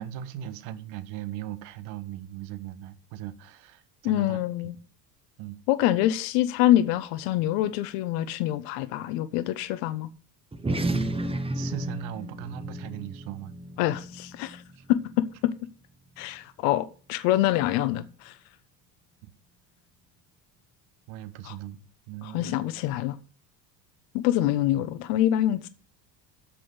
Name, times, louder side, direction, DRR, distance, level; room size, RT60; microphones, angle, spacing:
voice 1, 0.0-4.4 5.4-5.6 11.5-13.5 14.8-14.9 19.2-19.3 21.1-21.8 22.1-22.8, right 11 dB, 65° right, 1.4 m, -38 dB
voice 2, 4.0-4.7 5.7-10.1 13.8-14.6 14.9-15.5 16.2-18.4 21.5-21.6 22.3-23.2 24.1-25.7, left 13 dB, 65° left, 1.1 m, -25 dB
sound 1, 10.5-15.3, right 1 dB, 10° right, 1.1 m, -32 dB
8.3 x 6.2 x 8.0 m
hypercardioid pair, 90°, 50 cm